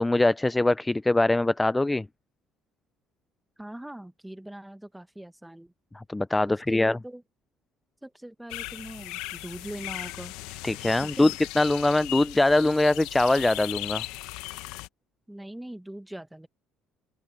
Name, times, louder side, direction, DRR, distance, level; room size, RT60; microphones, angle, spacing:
voice 1, 0.0-2.1 6.0-7.0 10.6-11.3 11.6-14.0, left 2 dB, 10° left, 0.3 m, -23 dB
voice 2, 3.6-5.7 6.4-7.2 8.0-10.3 11.0-11.3 15.3-16.5, right 1 dB, 5° right, 1.3 m, -41 dB
sound 1, 8.5-14.9, left 19 dB, 85° left, 0.8 m, -37 dB
open air
cardioid pair, 105°, 0 cm